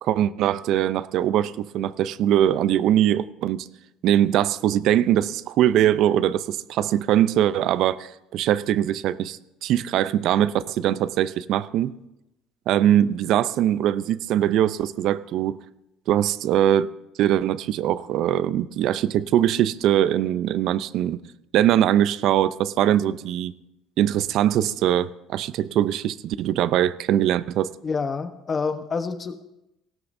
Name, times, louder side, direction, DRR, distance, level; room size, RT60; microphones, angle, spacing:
voice 1, 0.0-3.7 4.0-11.9 12.7-15.6 16.1-16.9 17.2-21.2 21.5-23.5 24.0-27.7, right 11 dB, 60° right, 0.5 m, -22 dB
voice 2, 27.8-29.4, left 4 dB, 25° left, 1.0 m, -27 dB
18.5 x 16.5 x 2.7 m
cardioid pair, 130°, 0 cm